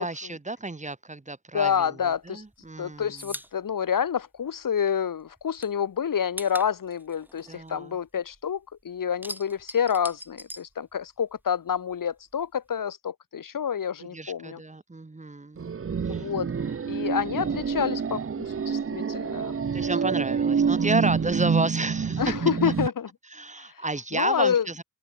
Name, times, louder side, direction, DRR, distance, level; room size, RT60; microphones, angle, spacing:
voice 1, 0.0-3.3 7.5-8.0 14.0-15.7 16.0-16.3 19.7-22.3 22.6-22.7 23.3-24.8, right 2 dB, 20° right, 1.5 m, -31 dB
voice 2, 1.5-2.4 2.8-8.6 8.8-14.6 16.1-16.5 16.9-19.9 22.2-23.1 24.1-24.6, left 8 dB, 70° left, 1.5 m, -28 dB
sound 1, 2.1-4.9 5.2-8.5 8.8-11.4 11.7-12.8, equal, 5° right, 7.7 m, -42 dB
sound 2, 15.6-22.9, right 6 dB, 40° right, 0.9 m, -27 dB
open air
cardioid pair, 75°, 34 cm